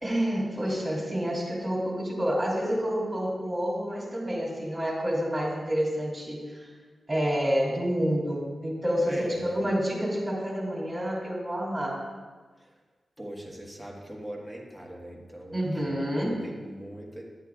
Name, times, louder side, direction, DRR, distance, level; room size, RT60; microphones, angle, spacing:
voice 1, 0.0-6.6 7.1-12.0 15.5-16.4, equal, 10° right, -4 dB, 2.7 m, -28 dB
voice 2, 9.0-9.6 12.6-12.7 13.2-17.2, right 1 dB, 5° left, -2 dB, 1.4 m, -39 dB
9.7 x 9.3 x 2.4 m, 1.4 s
wide cardioid pair, 110°, 0 cm